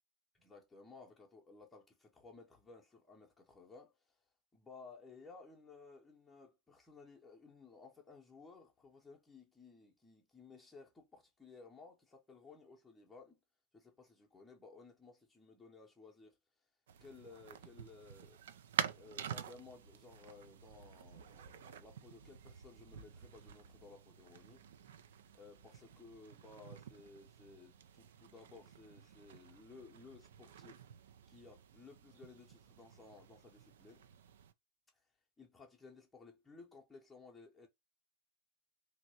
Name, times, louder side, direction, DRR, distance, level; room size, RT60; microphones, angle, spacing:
voice 1, 0.3-13.4 13.7-16.7 17.0-18.4 18.9-24.6 25.3-30.8 31.3-34.1 34.9-35.1 35.4-37.7, left 4 dB, 10° left, 0.7 m, -58 dB
sound 1, 16.9-34.5, right 9 dB, 60° right, 0.4 m, -48 dB
3.0 x 2.7 x 2.8 m
figure-of-eight pair, 90°, 0 cm